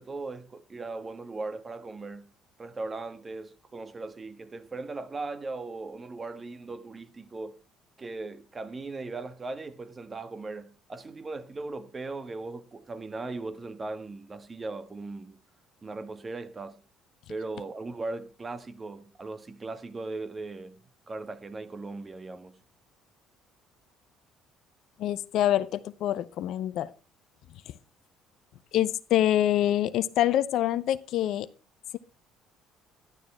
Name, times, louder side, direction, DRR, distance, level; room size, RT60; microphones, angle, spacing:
voice 1, 0.0-2.3 2.6-7.6 8.0-15.4 15.8-16.8 17.3-20.8 21.1-22.6, right 3 dB, 30° right, 1.5 m, -38 dB
voice 2, 25.0-26.9 28.7-31.5, left 12 dB, 65° left, 0.7 m, -25 dB
11.5 x 11.0 x 4.4 m
hypercardioid pair, 65°, 0 cm